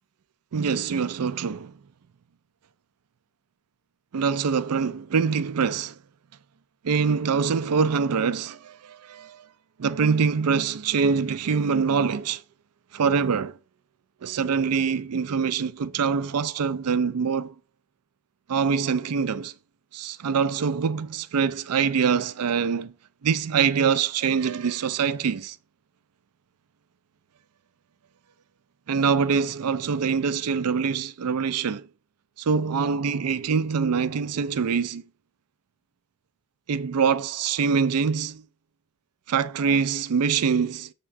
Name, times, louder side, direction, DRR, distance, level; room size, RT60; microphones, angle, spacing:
voice 1, 0.5-1.7 4.1-6.0 6.8-9.5 9.8-12.4 12.9-13.6 14.2-17.5 18.5-19.5 19.9-22.9 23.2-25.6 28.9-31.9 32.4-35.0 36.7-38.4 39.3-40.9, right 6 dB, 80° right, 0.4 m, -24 dB
6.8 x 3.7 x 4.4 m
head